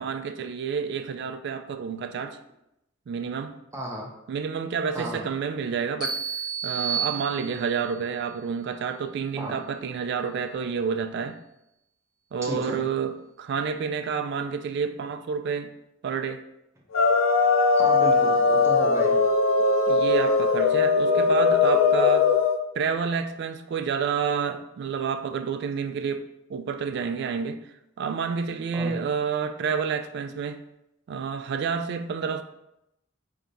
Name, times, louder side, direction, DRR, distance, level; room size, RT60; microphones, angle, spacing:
voice 1, 0.0-2.4 3.1-3.6 4.3-6.2 6.6-11.4 12.3-15.8 16.0-16.4 18.1-18.5 19.9-22.3 22.8-27.7 28.0-30.6 31.1-32.4, right 6 dB, 55° right, 0.3 m, -29 dB
voice 2, 3.7-4.1 4.9-5.2 9.4-9.5 12.4-12.8 17.8-19.2 28.7-28.9, equal, 15° right, 0.7 m, -33 dB
sound 1, 6.0-7.9, right 7 dB, 20° left, 1.3 m, -30 dB
sound 2, 16.9-22.6, left 4 dB, 85° left, 0.4 m, -20 dB
3.4 x 2.8 x 3.8 m
head